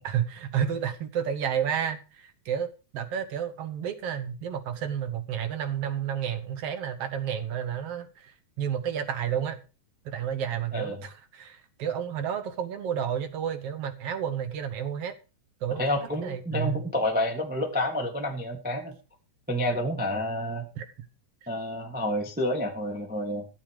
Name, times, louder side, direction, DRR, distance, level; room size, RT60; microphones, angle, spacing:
voice 1, 0.0-9.6 10.0-15.1 15.6-15.8 16.2-16.8 20.8-20.9, right 8 dB, 60° right, 1.7 m, -31 dB
voice 2, 15.8-18.9 19.5-20.7 21.5-23.5, left 1 dB, 5° right, 1.0 m, -29 dB
14.0 x 7.7 x 4.9 m
omnidirectional pair, 3.7 m